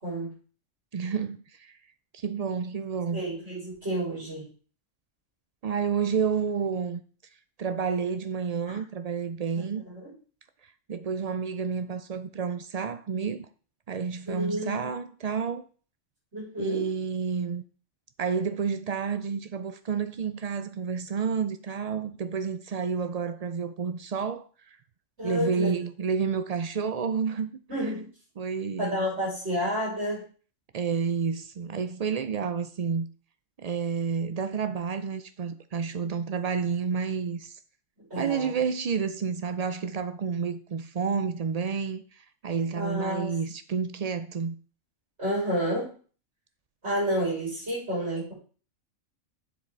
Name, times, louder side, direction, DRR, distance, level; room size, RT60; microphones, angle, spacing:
voice 1, 0.9-1.8 2.1-3.2 5.6-7.0 7.6-9.8 10.9-13.5 13.9-15.7 16.6-17.6 18.2-24.5 25.2-27.5 28.4-29.0 30.7-33.1 33.6-37.6 38.2-44.5, right 6 dB, 85° right, 0.3 m, -30 dB
voice 2, 3.1-4.5 8.7-8.8 9.7-10.1 14.3-14.9 16.3-16.8 25.2-25.8 27.7-28.1 28.8-30.3 38.1-38.5 42.7-43.3 45.2-45.9 46.8-48.3, equal, 55° right, 5.6 m, -30 dB
7.5 x 7.0 x 4.6 m
omnidirectional pair, 1.4 m